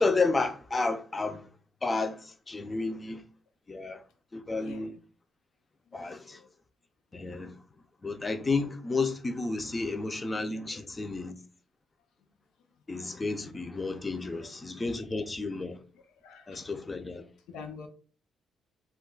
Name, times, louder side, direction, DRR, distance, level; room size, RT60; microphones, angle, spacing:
voice 1, 0.0-1.5 1.8-3.2 3.7-4.0 4.3-4.9 5.9-6.4 7.1-7.6 8.0-11.3 12.9-15.8 16.5-17.2, left 3 dB, 25° left, 0.4 m, -31 dB
voice 2, 5.9-6.5 10.7-10.8 16.2-16.7 17.5-17.9, left 6 dB, 90° left, 0.5 m, -46 dB
2.3 x 2.2 x 3.7 m
cardioid pair, 90°, 0 cm